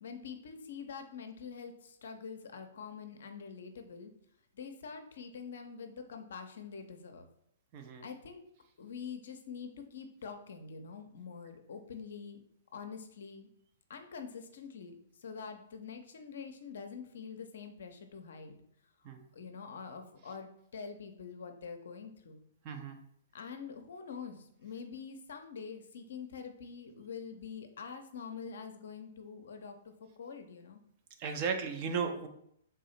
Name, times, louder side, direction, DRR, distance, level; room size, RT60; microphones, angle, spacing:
voice 1, 0.0-4.1 4.5-7.3 8.0-8.4 8.8-12.4 12.7-13.5 13.9-18.6 19.3-22.4 23.3-30.8, left 6 dB, 60° left, 6 dB, 0.6 m, -45 dB
voice 2, 7.7-8.0 19.0-19.2 22.6-23.0 31.2-32.3, right 6 dB, 35° right, 5 dB, 0.6 m, -35 dB
3.7 x 2.7 x 4.2 m, 0.71 s
figure-of-eight pair, 115°, 0 cm